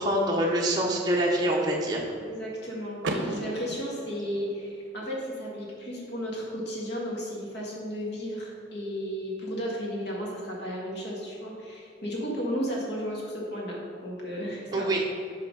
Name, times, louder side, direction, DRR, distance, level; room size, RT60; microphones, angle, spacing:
voice 1, 0.0-2.0 14.7-15.0, right 1 dB, 20° right, -2 dB, 0.6 m, -25 dB
voice 2, 2.3-14.9, equal, 55° left, -3 dB, 1.6 m, -34 dB
Car / Door, 3.0-5.0, right 2 dB, 65° right, 0.6 m, -35 dB
5.7 x 4.8 x 5.2 m, 2.4 s
head